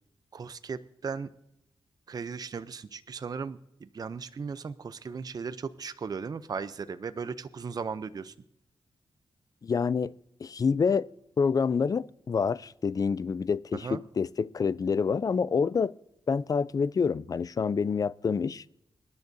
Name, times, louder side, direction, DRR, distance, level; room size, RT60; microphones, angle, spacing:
voice 1, 0.3-1.3 2.1-8.3 13.8-14.0, right 5 dB, 45° right, 0.5 m, -37 dB
voice 2, 9.6-10.1 10.4-11.1 11.4-15.9 16.3-18.6, left 5 dB, 40° left, 0.4 m, -27 dB
25.0 x 10.5 x 2.6 m
wide cardioid pair, 105°, 9 cm